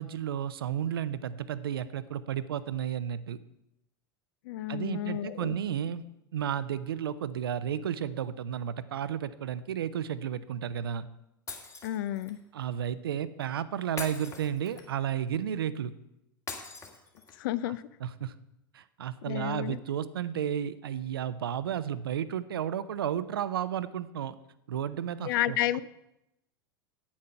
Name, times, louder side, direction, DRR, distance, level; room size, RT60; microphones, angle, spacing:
voice 1, 0.0-3.4 4.7-6.0 6.3-11.1 12.5-15.9 17.7-17.8 18.0-18.3 18.7-24.3 24.7-25.8, right 9 dB, 80° right, 15 dB, 0.5 m, -33 dB
voice 2, 4.4-5.5 11.8-12.4 17.4-17.9 19.3-19.8 25.2-25.8, left 14 dB, 65° left, 19 dB, 0.5 m, -31 dB
Shatter, 11.5-12.4 14.0-15.1 16.5-17.5, left 4 dB, 25° left, 1.8 m, -42 dB
8.7 x 8.5 x 5.7 m, 0.87 s
hypercardioid pair, 90°, 12 cm